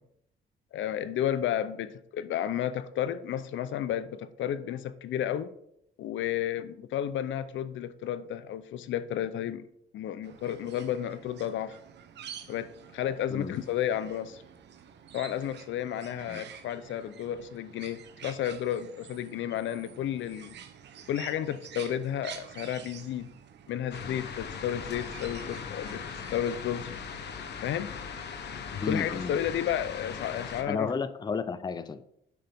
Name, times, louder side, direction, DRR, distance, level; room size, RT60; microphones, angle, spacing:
voice 1, 0.7-5.5 6.0-9.6 9.9-11.8 12.5-12.7 12.9-14.4 15.1-20.6 21.1-23.3 23.7-26.0 26.3-27.0 27.6-27.9 28.9-30.9, left 10 dB, 75° left, 0.7 m, -32 dB
sound 1, 10.2-26.6, right 8 dB, 65° right, 1.1 m, -49 dB
sound 2, 23.9-30.6, left 6 dB, 60° left, 1.2 m, -39 dB
voice 2, 28.8-29.3 30.7-32.1, left 5 dB, 20° left, 0.5 m, -32 dB
10.0 x 7.7 x 3.6 m
cardioid pair, 135°, 20 cm